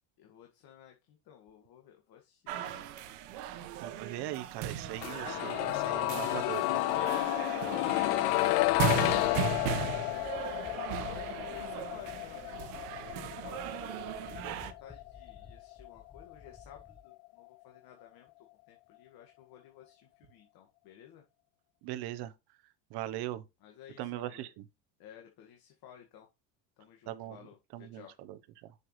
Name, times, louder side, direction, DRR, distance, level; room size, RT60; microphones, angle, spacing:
voice 1, 0.2-2.9 6.9-7.1 7.4-10.3 11.0-21.2 23.6-24.5 25.0-26.3 26.8-28.1, left 9 dB, 55° left, 1.9 m, -55 dB
sound 1, 2.5-14.7, right 10 dB, 85° right, 1.3 m, -38 dB
voice 2, 3.8-6.8 21.8-22.3 22.9-23.4 24.0-24.6 27.1-27.4 27.7-28.7, right 14 dB, 60° right, 1.0 m, -40 dB
sound 2, 5.0-16.8 17.1-17.2, left 21 dB, 80° left, 0.5 m, -32 dB
sound 3, 9.4-17.0, left 4 dB, 10° left, 0.8 m, -55 dB
6.9 x 6.6 x 3.2 m
cardioid pair, 135°, 44 cm